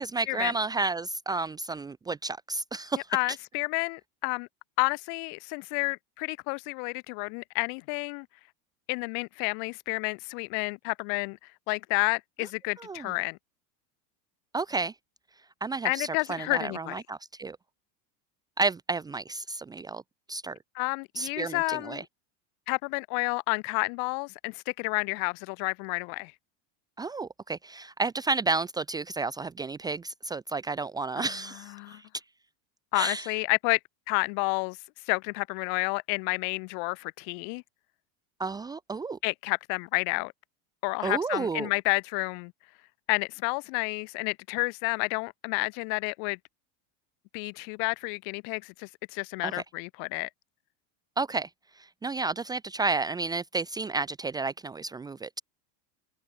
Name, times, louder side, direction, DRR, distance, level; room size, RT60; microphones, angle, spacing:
voice 1, 0.0-3.1 12.8-13.0 14.5-14.9 15.6-17.6 18.6-20.0 20.3-20.6 21.2-22.0 27.0-32.0 32.9-33.3 38.4-39.2 41.0-41.7 49.4-49.6 51.2-51.5 52.0-55.4, right 3 dB, 10° right, 1.2 m, -31 dB
voice 2, 3.1-4.5 4.8-8.3 8.9-13.4 15.8-16.9 20.7-22.1 22.7-26.3 31.2-32.0 32.9-33.8 34.1-34.8 35.1-37.6 39.2-40.3 40.8-42.5 43.1-46.4 47.3-50.3, left 40 dB or more, 50° left, 8.0 m, -30 dB
open air
supercardioid pair, 175°, 43 cm